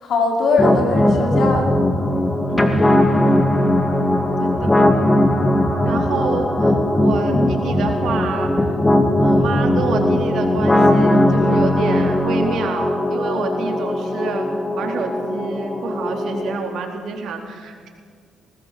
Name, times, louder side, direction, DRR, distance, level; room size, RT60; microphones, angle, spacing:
voice 1, 0.0-1.7 7.2-7.5, left 3 dB, 65° left, 1 dB, 5.3 m, -20 dB
sound 1, 0.6-16.6, left 1 dB, 15° left, 2.4 m, -18 dB
voice 2, 2.5-3.1 4.4-4.8 5.8-8.7 9.2-14.5 14.8-17.9, right 5 dB, 70° right, 2 dB, 4.1 m, -28 dB
20.5 x 19.0 x 7.7 m, 2.2 s
cardioid pair, 90°, 0 cm